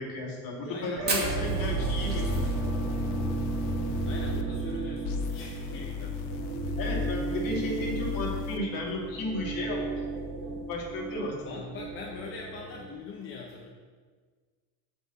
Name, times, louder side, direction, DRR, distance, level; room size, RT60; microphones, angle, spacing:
voice 1, 0.0-3.1 6.8-11.7, left 1 dB, 40° left, -1 dB, 2.9 m, -34 dB
voice 2, 0.7-1.0 4.0-6.4 11.4-13.7, left 4 dB, 25° left, -2 dB, 1.2 m, -42 dB
sound 1, 1.0-12.9, right 3 dB, 50° right, 3.6 m, -33 dB
Fire, 1.1-5.6 5.8-5.9 6.2-6.3 6.7-7.1 7.6-7.7 8.7-8.9, right 2 dB, 20° right, 2.6 m, -36 dB
sound 2, 2.1-4.4 5.0-8.6, left 8 dB, 85° left, 0.9 m, -36 dB
8.0 x 6.0 x 8.0 m, 1.5 s
supercardioid pair, 130°, 50 cm